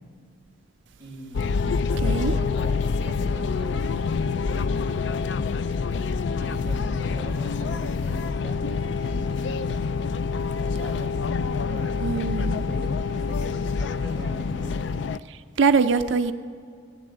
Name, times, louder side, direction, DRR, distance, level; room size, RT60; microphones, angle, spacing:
voice 1, 1.0-4.7 5.6-9.8 10.6-14.8, right 1 dB, 15° left, -5 dB, 5.3 m, -41 dB
sound 1, 1.3-15.2, left 5 dB, 65° left, 0.4 m, -26 dB
voice 2, 2.0-2.4 12.0-12.6 15.3-16.3, right 5 dB, 70° right, 10 dB, 0.5 m, -23 dB
16.0 x 9.9 x 7.8 m, 2.1 s
head